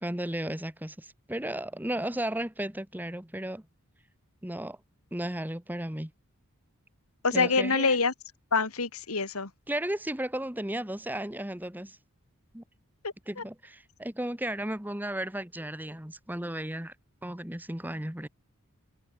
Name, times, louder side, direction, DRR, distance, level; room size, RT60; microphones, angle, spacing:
voice 1, 0.0-3.6 4.4-4.8 5.1-6.1 7.3-8.0 9.7-12.0 12.5-12.6 13.3-16.9 17.2-18.3, right 1 dB, 10° right, 1.3 m, -34 dB
voice 2, 7.2-8.1 8.5-9.5 13.0-13.4, left 4 dB, 85° left, 2.2 m, -26 dB
head